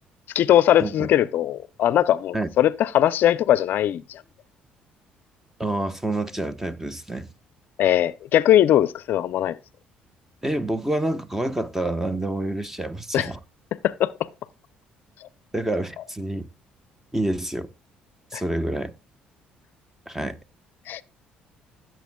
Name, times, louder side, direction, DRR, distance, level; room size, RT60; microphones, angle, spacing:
voice 1, 0.3-4.2 7.8-9.6 13.1-13.3 13.8-14.1 18.3-18.4 20.9-21.0, left 12 dB, 65° left, 0.5 m, -20 dB
voice 2, 5.6-7.3 10.4-13.4 15.5-16.5 17.1-17.7 18.3-18.9 20.1-20.4, right 1 dB, 10° right, 1.0 m, -27 dB
16.0 x 7.6 x 2.3 m
supercardioid pair, 70°, 4 cm